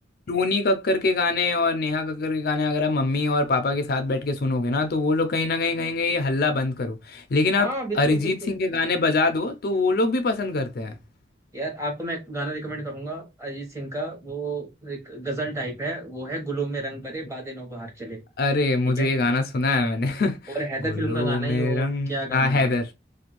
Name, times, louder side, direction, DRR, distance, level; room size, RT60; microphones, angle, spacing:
voice 1, 0.3-7.7 7.9-11.0 18.4-20.6 20.9-22.9, left 3 dB, 50° left, 0.4 m, -23 dB
voice 2, 7.6-8.5 11.5-18.2 19.0-19.1 20.5-22.7, right 2 dB, 15° right, 1.0 m, -31 dB
2.5 x 2.2 x 2.9 m
head